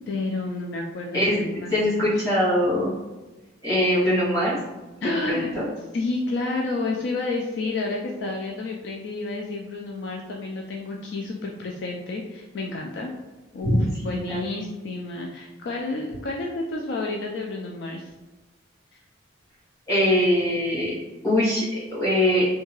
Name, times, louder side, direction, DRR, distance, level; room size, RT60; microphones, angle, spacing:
voice 1, 0.1-1.7 2.0-2.1 5.0-5.5 5.9-13.1 13.5-18.0, left 2 dB, 60° left, 0 dB, 0.3 m, -30 dB
voice 2, 1.7-2.9 3.6-4.6 5.0-5.7 13.6-14.5 19.9-20.9 21.2-22.5, left 1 dB, 15° left, -10 dB, 1.3 m, -22 dB
2.7 x 2.2 x 2.9 m, 1.2 s
head